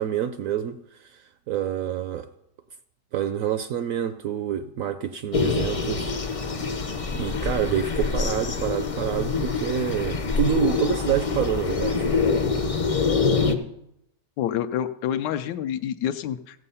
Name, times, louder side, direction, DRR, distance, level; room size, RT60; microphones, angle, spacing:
voice 1, 0.0-2.3 3.1-6.1 6.5-6.6 7.1-12.1, right 10 dB, 70° right, 10 dB, 0.8 m, -27 dB
sound 1, 5.3-13.6, left 4 dB, 40° left, 0.5 m, -25 dB
voice 2, 14.4-16.6, left 10 dB, 85° left, 8 dB, 1.2 m, -28 dB
14.5 x 7.5 x 5.5 m, 0.80 s
omnidirectional pair, 1.8 m